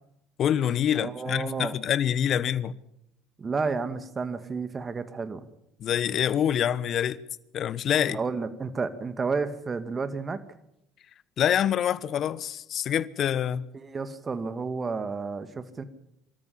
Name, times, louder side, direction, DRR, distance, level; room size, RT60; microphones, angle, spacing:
voice 1, 0.4-2.7 5.8-7.2 7.5-8.2 11.4-13.7, left 9 dB, 50° left, 1.0 m, -26 dB
voice 2, 0.9-1.8 3.4-5.5 8.1-10.4 13.7-15.8, right 4 dB, 30° right, 2.1 m, -31 dB
25.0 x 13.5 x 8.7 m
hypercardioid pair, 65°, 0 cm